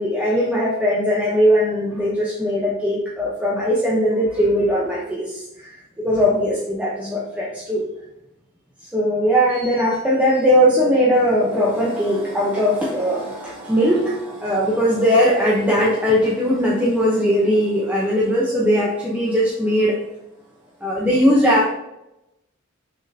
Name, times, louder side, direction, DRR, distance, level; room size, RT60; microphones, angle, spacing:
voice 1, 0.0-7.9 8.8-20.0 20.8-21.7, equal, 5° right, -6 dB, 0.9 m, -19 dB
6.6 x 6.3 x 2.8 m, 0.89 s
head